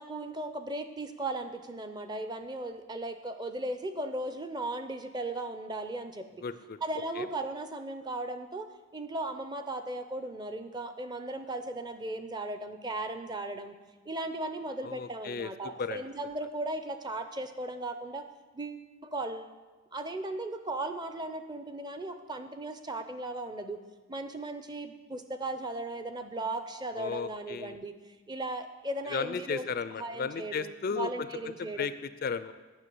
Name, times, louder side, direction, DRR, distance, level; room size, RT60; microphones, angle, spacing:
voice 1, 0.0-6.4 6.8-8.7 8.9-13.8 14.1-18.2 18.5-19.5 19.9-23.8 24.1-29.7 30.0-32.0, right 2 dB, 20° right, 8 dB, 0.5 m, -37 dB
voice 2, 6.4-6.8 7.2-7.3 14.8-15.5 15.8-16.0 27.0-27.8 29.1-31.3 31.6-31.9 32.2-32.5, left 5 dB, 45° left, 13 dB, 0.3 m, -34 dB
9.6 x 5.9 x 7.7 m, 1.3 s
head